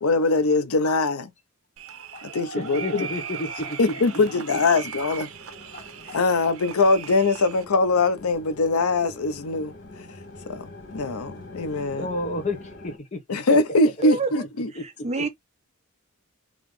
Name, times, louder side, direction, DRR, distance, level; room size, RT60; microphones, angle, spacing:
voice 1, 0.0-1.3 2.2-3.1 3.8-5.3 6.1-9.7 10.5-12.1 13.3-14.7, left 3 dB, 85° left, 0.6 m, -22 dB
sound 1, 1.8-7.6, right 7 dB, 75° right, 0.8 m, -38 dB
voice 2, 2.1-4.2 5.7-6.2 12.0-13.2 14.8-14.9 15.2-15.3, left 2 dB, 35° left, 1.0 m, -32 dB
sound 2, 4.6-13.0, left 2 dB, 55° left, 1.3 m, -44 dB
voice 3, 14.0-14.5 14.7-15.3, right 3 dB, 30° right, 0.7 m, -28 dB
3.9 x 3.0 x 3.1 m
head